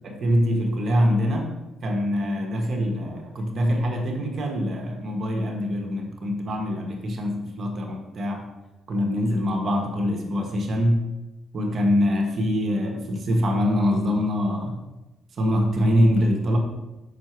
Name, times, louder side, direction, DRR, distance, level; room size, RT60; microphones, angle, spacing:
voice 1, 0.0-1.5 1.8-8.5 8.9-11.0 11.5-14.8 15.4-16.6, equal, 55° right, 2 dB, 1.4 m, -24 dB
6.6 x 5.8 x 4.5 m, 1.0 s
cardioid pair, 90°, 0 cm